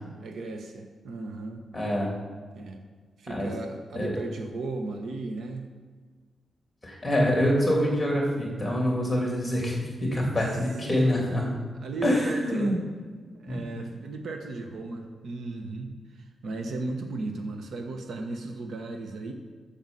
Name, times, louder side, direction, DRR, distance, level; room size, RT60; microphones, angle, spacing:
voice 1, 0.2-1.6 2.5-2.8 3.2-5.7 8.9-9.2 10.8-11.2 11.8-12.7 13.3-19.3, right 3 dB, 65° right, 4 dB, 1.2 m, -36 dB
voice 2, 1.7-2.1 3.3-3.5 3.9-4.1 6.8-9.8 10.1-11.5 12.0-12.8 13.5-13.6, equal, 5° left, -2 dB, 2.8 m, -25 dB
9.5 x 7.1 x 7.6 m, 1.5 s
wide cardioid pair, 175°, 0 cm